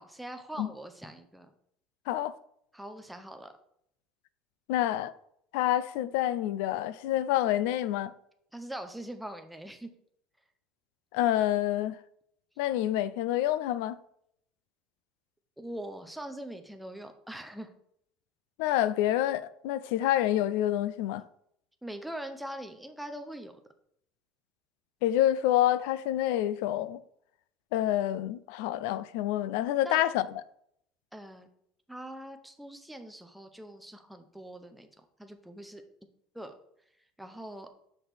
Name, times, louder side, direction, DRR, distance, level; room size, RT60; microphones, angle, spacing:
voice 1, 0.0-1.5 2.7-3.5 8.5-9.9 15.6-17.7 21.8-23.6 29.8-30.0 31.1-31.5 31.9-34.9 35.2-35.8 36.3-36.5 37.2-37.7, right 1 dB, ahead, 0.6 m, -42 dB
voice 2, 4.7-5.1 5.5-8.1 11.1-12.0 12.6-14.0 18.6-21.2 25.0-27.0 27.7-30.3, left 13 dB, 80° left, 0.3 m, -27 dB
6.2 x 5.9 x 3.4 m
cardioid pair, 165°, 0 cm